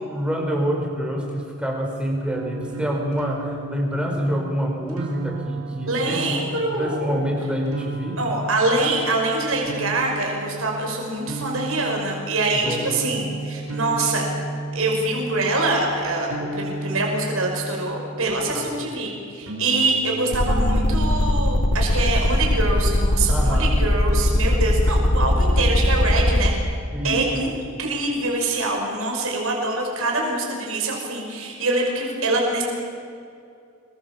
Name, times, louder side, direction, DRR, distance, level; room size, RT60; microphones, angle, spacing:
voice 1, 0.1-6.4 6.7-8.2 12.6-12.9 18.5-18.7 23.3-23.8 26.9-27.5, equal, 5° right, 0 dB, 4.9 m, -27 dB
sound 1, 2.3-18.6 19.4-21.4, right 2 dB, 90° right, 5.6 m, -34 dB
voice 2, 5.8-7.3 8.2-14.3 14.7-26.5 27.0-27.5 27.8-32.6, right 2 dB, 70° right, 0 dB, 5.6 m, -24 dB
sound 2, 20.3-26.5, left 1 dB, 70° left, 2.0 m, -19 dB
26.5 x 22.5 x 7.3 m, 2.4 s
head